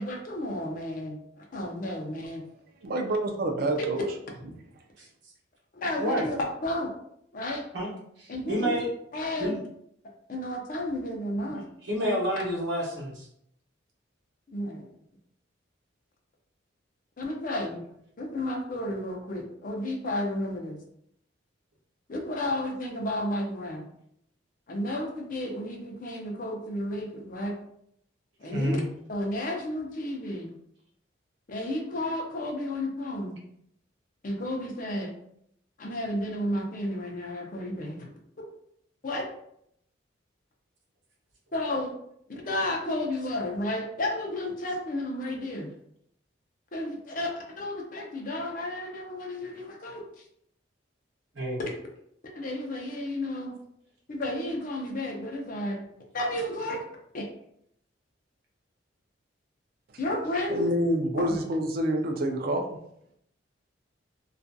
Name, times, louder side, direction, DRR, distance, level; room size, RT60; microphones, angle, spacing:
voice 1, 0.0-2.4 3.8-3.9 5.7-6.4 6.6-6.9 7.3-7.6 8.3-8.8 9.1-9.6 10.3-11.6 14.5-14.9 17.2-17.8 18.2-20.8 22.1-23.9 24.7-27.6 28.4-28.8 29.1-30.5 31.5-33.4 34.2-35.1 35.8-38.1 39.0-39.2 41.5-41.9 42.3-45.7 46.7-50.2 52.3-53.6 54.1-55.8 56.1-56.8 57.1-57.3 60.0-60.7, left 1 dB, 45° left, 1 dB, 0.5 m, -32 dB
voice 2, 2.8-4.0 60.5-62.8, right 1 dB, 50° right, 4 dB, 0.4 m, -27 dB
voice 3, 8.2-8.9 9.4-9.6 11.4-11.5 11.8-13.3 28.5-28.8 51.3-51.6, equal, 70° right, -3 dB, 0.8 m, -29 dB
2.6 x 2.4 x 2.2 m, 0.72 s
head